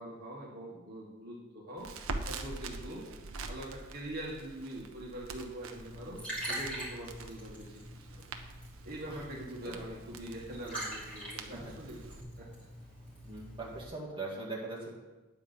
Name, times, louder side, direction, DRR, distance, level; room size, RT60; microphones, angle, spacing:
voice 1, 0.0-1.9 2.3-3.0 3.4-6.2 6.5-7.8 8.1-8.2 8.8-12.5, right 1 dB, 45° right, -4 dB, 1.9 m, -43 dB
Crackle, 1.8-12.2, right 3 dB, 70° right, 0.8 m, -45 dB
Liquid, 5.7-13.8, right 1 dB, 5° left, 3.3 m, -44 dB
voice 2, 13.2-14.9, right 2 dB, 25° right, -4 dB, 2.1 m, -41 dB
9.5 x 5.0 x 7.1 m, 1.1 s
head